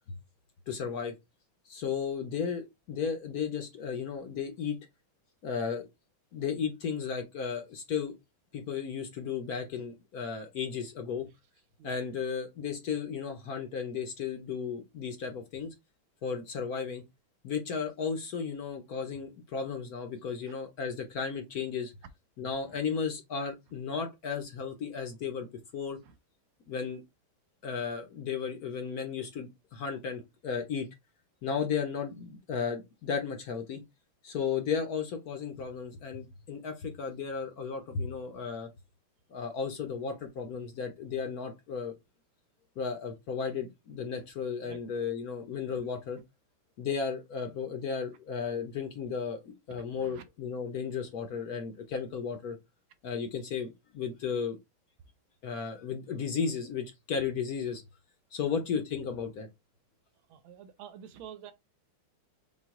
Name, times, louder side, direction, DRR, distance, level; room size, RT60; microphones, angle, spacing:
voice 1, 0.7-1.1 1.7-4.8 5.4-5.9 6.3-8.1 8.5-11.3 11.8-15.7 16.2-17.0 17.4-21.9 22.4-25.5 25.7-26.0 26.7-27.0 27.6-30.9 31.4-33.8 34.2-38.7 39.3-41.9 42.8-46.2 46.8-52.6 53.0-54.6 55.4-57.8 58.3-59.5, left 6 dB, 60° left, 1.0 m, -34 dB
voice 2, 49.7-50.2 58.4-58.5 60.3-61.5, right 9 dB, 75° right, 1.4 m, -49 dB
6.1 x 2.4 x 3.6 m
omnidirectional pair, 2.4 m